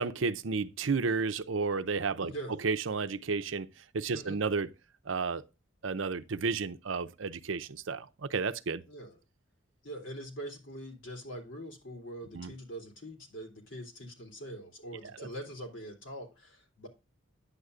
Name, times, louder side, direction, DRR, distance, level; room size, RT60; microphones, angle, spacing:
voice 1, 0.0-2.3 2.6-3.7 3.9-4.7 5.1-5.4 5.8-8.8 12.3-12.5 15.2-15.3, right 4 dB, 75° right, 0.6 m, -32 dB
voice 2, 2.2-2.6 4.1-4.4 8.9-9.2 9.8-16.9, right 1 dB, 70° left, 3.2 m, -43 dB
9.6 x 8.0 x 2.4 m
head